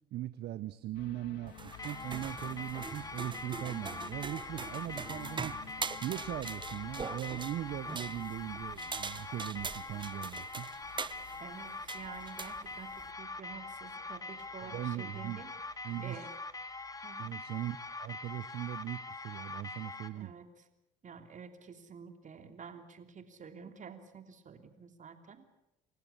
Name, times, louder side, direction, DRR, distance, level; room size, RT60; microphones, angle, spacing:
voice 1, 0.1-10.7 14.6-15.4 15.8-16.2 17.2-20.3, right 14 dB, 60° right, 15 dB, 0.8 m, -40 dB
sound 1, 0.9-19.4 19.7-19.8, left 14 dB, 65° left, 1.4 m, -55 dB
sound 2, 1.5-13.1, right 5 dB, 25° right, 0.8 m, -43 dB
sound 3, 1.7-20.1, left 3 dB, 20° left, 1.8 m, -43 dB
voice 2, 11.4-15.5 16.0-16.3 17.0-17.4 20.1-20.7 21.0-25.4, right 6 dB, 40° right, 7 dB, 3.2 m, -49 dB
28.5 x 15.0 x 8.5 m, 0.88 s
hypercardioid pair, 70°, 19 cm